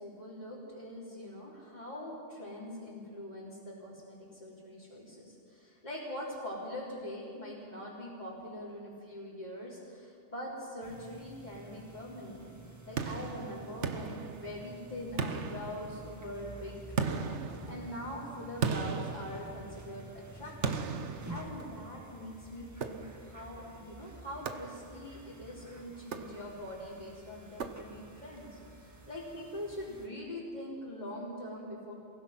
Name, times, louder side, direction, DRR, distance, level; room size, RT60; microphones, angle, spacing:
voice 1, 0.0-12.4 12.9-31.9, left 1 dB, 35° left, -7 dB, 3.7 m, -43 dB
sound 1, 10.8-30.1, right 1 dB, 15° right, 1.6 m, -51 dB
sound 2, 13.0-14.8 15.2-16.3 17.0-20.0 20.6-22.0 22.8-23.4 24.5-25.2 26.0-26.8 27.6-28.3, right 5 dB, 70° right, 1.3 m, -37 dB
29.0 x 16.0 x 5.9 m, 2.5 s
omnidirectional pair, 1.3 m